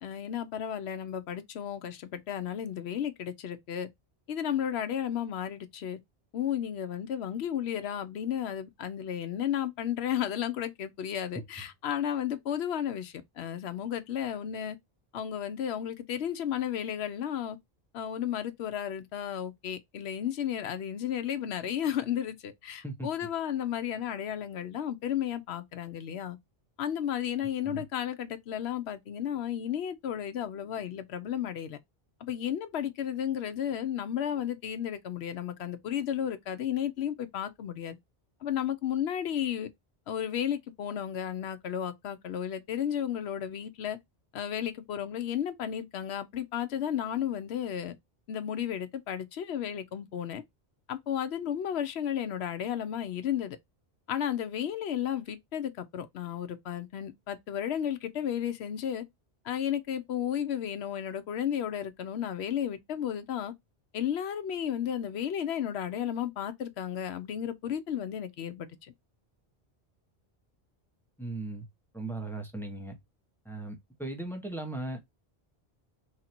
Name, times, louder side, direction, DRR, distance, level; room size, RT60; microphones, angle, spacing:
voice 1, 0.0-3.9 4.3-6.0 6.3-14.8 15.1-17.6 17.9-26.4 26.8-31.8 32.2-38.0 38.4-39.7 40.1-44.0 44.3-47.9 48.3-50.4 50.9-53.6 54.1-59.0 59.4-63.5 63.9-68.9, left 9 dB, 80° left, 0.9 m, -33 dB
voice 2, 71.2-71.6 71.9-72.9 73.4-75.0, right 2 dB, ahead, 0.9 m, -37 dB
3.3 x 2.6 x 4.2 m
omnidirectional pair, 1.1 m